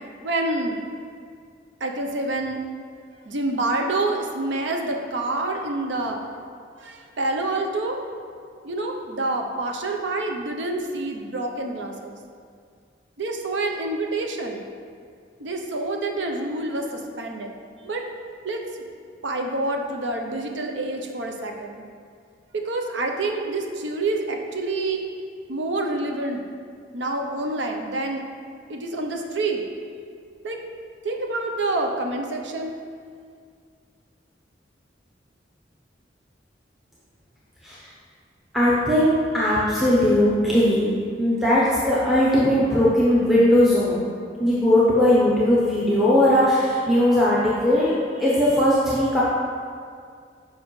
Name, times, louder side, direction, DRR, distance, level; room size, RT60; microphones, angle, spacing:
voice 1, 0.2-0.8 1.8-2.6 3.3-6.2 6.8-8.0 8.6-12.1 13.2-14.6 15.4-17.5 17.8-18.1 18.4-18.6 19.2-21.8 22.5-25.0 25.5-26.4 26.9-28.2 28.7-29.6 30.4-30.6 31.0-32.8, right 2 dB, 85° right, 3 dB, 0.7 m, -27 dB
voice 2, 38.5-40.9 41.2-44.1 44.4-49.2, left 1 dB, ahead, -8 dB, 0.7 m, -19 dB
7.1 x 5.3 x 3.1 m, 2.2 s
head